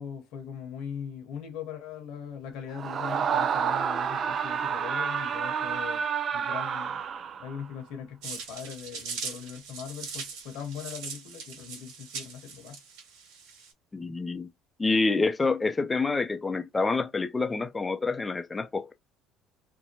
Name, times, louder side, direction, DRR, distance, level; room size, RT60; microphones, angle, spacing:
voice 1, 0.0-6.0 6.3-7.0 7.4-12.8, left 8 dB, 70° left, 1.0 m, -40 dB
Screaming, 2.7-7.6, right 7 dB, 50° right, 0.4 m, -29 dB
sound 1, 8.2-13.7, right 5 dB, 75° right, 1.2 m, -40 dB
voice 2, 13.9-14.5 14.8-18.9, left 3 dB, 20° left, 0.5 m, -27 dB
2.7 x 2.2 x 3.0 m
supercardioid pair, 75°, 0 cm